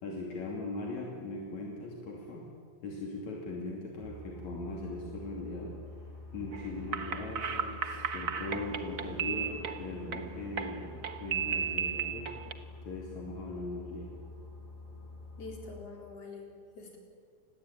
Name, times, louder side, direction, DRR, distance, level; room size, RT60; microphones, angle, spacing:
voice 1, 0.0-2.5 2.8-5.8 6.3-14.1, left 2 dB, 70° left, -1 dB, 4.1 m, -40 dB
sound 1, 4.0-15.8, left 2 dB, 15° right, 6.8 m, -47 dB
sound 2, 6.5-12.5, right 7 dB, 45° right, 1.1 m, -35 dB
voice 2, 15.4-17.0, left 3 dB, 55° left, 1 dB, 5.2 m, -46 dB
28.5 x 20.5 x 9.0 m, 2.2 s
omnidirectional pair, 3.3 m